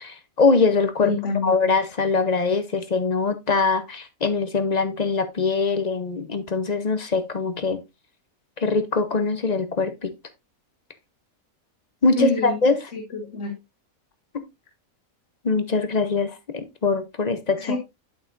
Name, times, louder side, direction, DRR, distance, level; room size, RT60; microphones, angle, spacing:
voice 1, 0.0-1.1 1.4-7.8 8.6-10.1 12.0-12.8 15.4-17.8, left 4 dB, 40° left, 0.7 m, -22 dB
voice 2, 1.0-1.7 12.2-12.6 12.9-13.6 17.6-17.8, left 2 dB, 60° left, 1.3 m, -27 dB
8.4 x 8.0 x 2.6 m
omnidirectional pair, 1.5 m